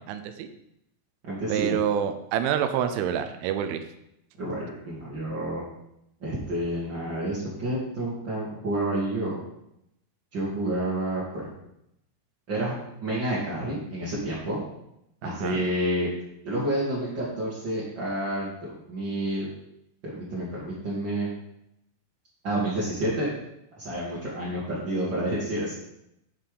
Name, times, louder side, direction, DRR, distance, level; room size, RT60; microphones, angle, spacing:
voice 1, 0.1-0.5 1.5-3.8 15.2-15.6, right 9 dB, 85° right, 8 dB, 3.2 m, -27 dB
voice 2, 1.2-1.8 4.4-5.6 6.2-9.4 10.3-11.5 12.5-12.7 13.0-14.6 15.2-16.1 16.4-19.5 20.1-21.3 22.4-23.3 23.8-25.7, right 1 dB, 45° right, -8 dB, 1.4 m, -29 dB
10.0 x 5.6 x 5.1 m, 0.80 s
omnidirectional pair, 5.5 m